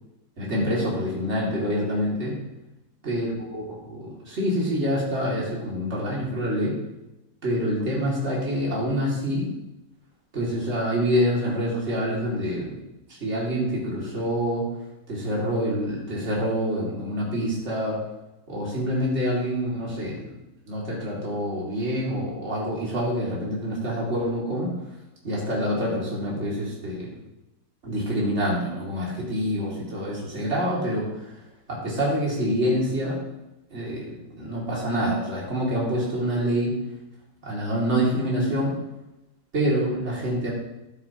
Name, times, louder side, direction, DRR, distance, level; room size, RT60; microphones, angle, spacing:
voice 1, 0.4-2.4 3.0-6.8 7.4-9.5 10.3-12.8 13.1-14.7 15.1-18.0 18.5-20.3 20.7-24.7 25.2-27.1 27.8-31.1 31.7-33.2 33.7-36.7 37.4-38.8 39.5-40.5, equal, 40° right, -5 dB, 3.0 m, -26 dB
12.5 x 9.8 x 3.0 m, 0.96 s
omnidirectional pair, 1.7 m